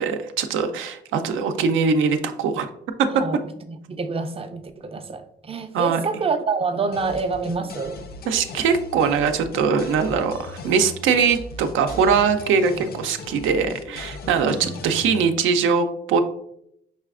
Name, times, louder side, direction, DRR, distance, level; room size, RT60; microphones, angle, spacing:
voice 1, 0.0-2.7 5.7-6.0 8.3-16.2, right 5 dB, 80° right, 7 dB, 0.5 m, -21 dB
voice 2, 3.7-8.0 14.4-14.7, right 4 dB, 30° right, 8 dB, 0.5 m, -27 dB
sound 1, 6.9-15.3, left 3 dB, 50° left, 0.4 m, -38 dB
5.5 x 3.2 x 2.4 m, 0.74 s
cardioid pair, 90°, 20 cm